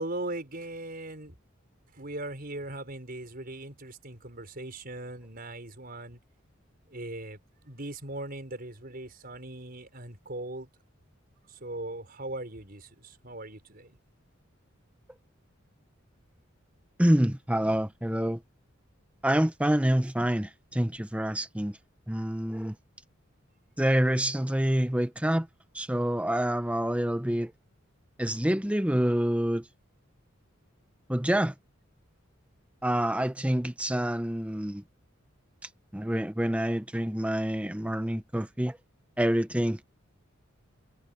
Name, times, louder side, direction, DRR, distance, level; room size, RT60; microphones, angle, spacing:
voice 1, 0.0-1.4 1.9-6.2 6.9-10.7 11.5-14.0, right 2 dB, 45° right, 5.7 m, -39 dB
voice 2, 17.0-18.4 19.2-21.8 22.1-22.7 23.8-25.5 25.7-27.5 28.2-29.6 31.1-31.5 32.8-34.8 35.9-38.8 39.2-39.8, right 1 dB, 5° right, 0.7 m, -27 dB
head